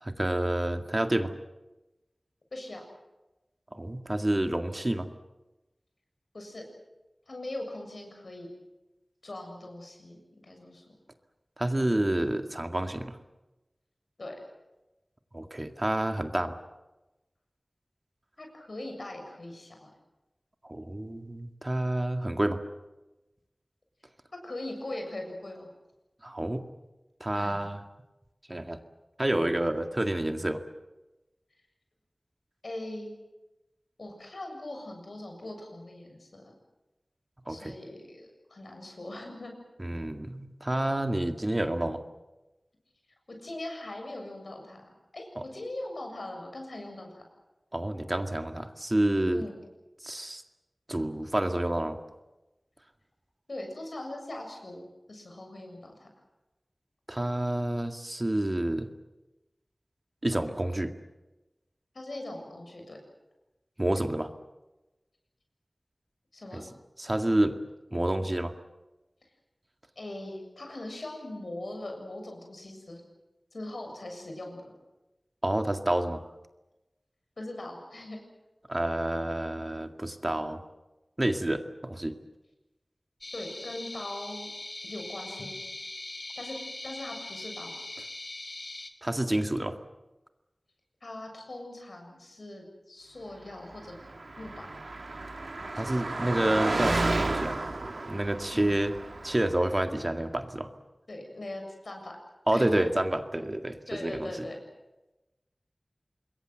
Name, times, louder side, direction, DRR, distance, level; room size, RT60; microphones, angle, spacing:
voice 1, 0.0-1.3 3.7-5.1 11.6-13.2 15.3-16.6 20.6-22.6 26.2-26.6 27.2-27.8 28.5-28.8 29.2-30.6 37.5-37.7 39.8-42.0 45.4-45.5 47.7-49.5 50.0-50.4 50.9-52.0 57.1-58.9 60.2-60.9 63.8-64.3 66.5-66.6 67.0-67.6 67.9-68.5 75.4-76.2 78.7-80.6 81.2-82.2 89.0-89.8 95.8-97.6 98.1-98.9 99.2-100.7 102.5-104.5, right 1 dB, 30° right, 7 dB, 2.0 m, -29 dB
voice 2, 2.5-2.8 6.3-6.6 7.3-8.5 9.2-10.9 14.2-14.4 18.4-19.9 24.3-25.7 27.3-27.7 32.6-33.1 34.0-36.5 37.5-39.5 43.4-44.9 45.1-47.2 49.3-49.6 53.5-56.1 61.9-63.0 66.3-66.6 70.0-73.0 73.5-74.6 77.4-78.2 83.3-84.5 84.8-85.6 86.4-86.6 86.8-87.8 91.0-94.0 94.4-94.7 95.8-96.1 98.5-98.8 101.1-102.2 102.5-102.9 103.9-104.6, left 1 dB, 80° left, 3 dB, 7.3 m, -40 dB
sound 1, 83.2-88.9, left 2 dB, 60° left, 2.9 m, -41 dB
Car passing by, 93.8-99.8, right 2 dB, 80° right, 1.8 m, -32 dB
26.5 x 22.0 x 7.9 m, 1.0 s
wide cardioid pair, 55°, 0 cm